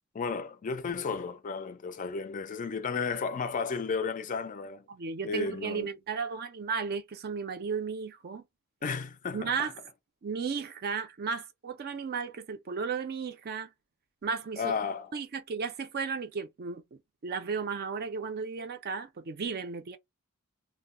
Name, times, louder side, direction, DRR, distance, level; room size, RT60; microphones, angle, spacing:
voice 1, 0.1-4.8 5.2-5.9 8.8-9.5 14.6-15.1, left 5 dB, 35° left, 0.4 m, -33 dB
voice 2, 4.9-8.4 9.3-9.7 10.2-13.7 14.2-14.7 15.1-20.0, right 5 dB, 45° right, 0.5 m, -34 dB
2.2 x 2.0 x 3.6 m
head